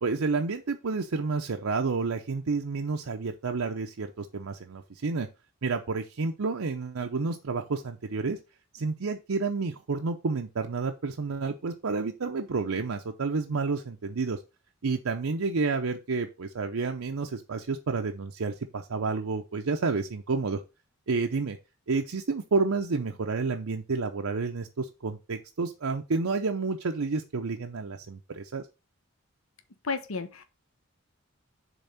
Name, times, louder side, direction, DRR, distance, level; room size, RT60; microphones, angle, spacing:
voice 1, 0.0-5.3 5.6-8.4 8.7-14.4 14.8-20.6 21.1-21.6 21.9-28.6, right 4 dB, 80° right, 4 dB, 0.6 m, -30 dB
voice 2, 29.8-30.4, left 4 dB, 80° left, 9 dB, 0.9 m, -32 dB
7.0 x 3.6 x 5.6 m, 0.29 s
head